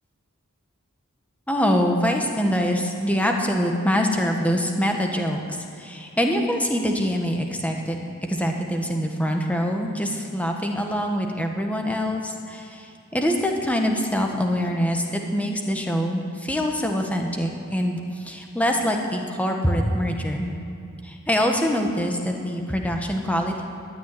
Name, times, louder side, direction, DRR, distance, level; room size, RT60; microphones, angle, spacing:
voice 1, 1.5-5.4 5.8-20.5 21.0-23.6, equal, 5° left, 2 dB, 1.3 m, -24 dB
14.0 x 9.5 x 9.7 m, 2.6 s
head